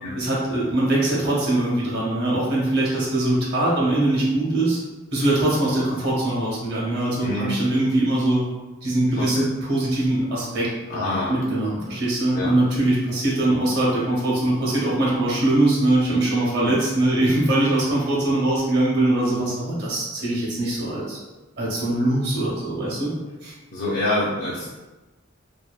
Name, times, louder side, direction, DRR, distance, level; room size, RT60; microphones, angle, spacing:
voice 1, 0.1-4.8 5.1-8.4 8.8-21.2 21.6-23.1 23.4-23.5, right 1 dB, 55° right, -5 dB, 0.8 m, -22 dB
voice 2, 7.2-7.6 9.1-9.5 10.9-11.3 12.3-12.5 16.6-16.7 18.2-18.3 23.7-24.7, left 1 dB, 40° left, -6 dB, 0.4 m, -26 dB
2.6 x 2.2 x 2.3 m, 1.1 s
head